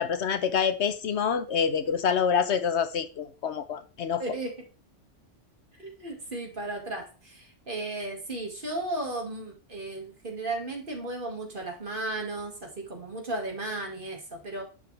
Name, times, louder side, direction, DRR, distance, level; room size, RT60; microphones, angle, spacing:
voice 1, 0.0-4.2, left 7 dB, 65° left, 1.0 m, -26 dB
voice 2, 4.2-4.5 5.8-14.6, right 2 dB, 45° right, 2.2 m, -35 dB
11.0 x 6.2 x 3.3 m
omnidirectional pair, 1.2 m